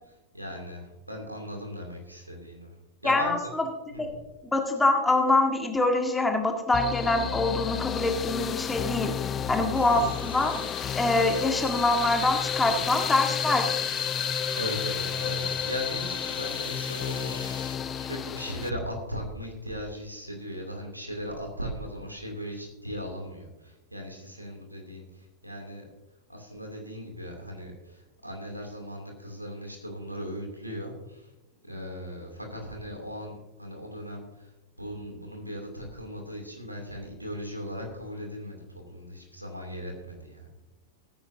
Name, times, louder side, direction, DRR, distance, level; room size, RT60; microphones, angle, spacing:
voice 1, 0.3-2.7 3.0-3.5 3.9-4.2 9.3-10.2 12.4-12.8 14.2-25.9 26.3-31.3 31.6-34.5 34.8-40.5, equal, 85° right, 2 dB, 2.7 m, -38 dB
voice 2, 3.0-3.6 4.0-4.1 4.4-9.1 9.5-10.5 11.0-13.7, left 2 dB, 10° left, 4 dB, 1.8 m, -25 dB
sound 1, 6.7-18.7, left 8 dB, 25° left, 0.4 m, -31 dB
sound 2, 9.7-17.7, left 2 dB, 85° left, 1.9 m, -44 dB
18.0 x 9.9 x 2.7 m, 1.0 s
figure-of-eight pair, 90°, 0 cm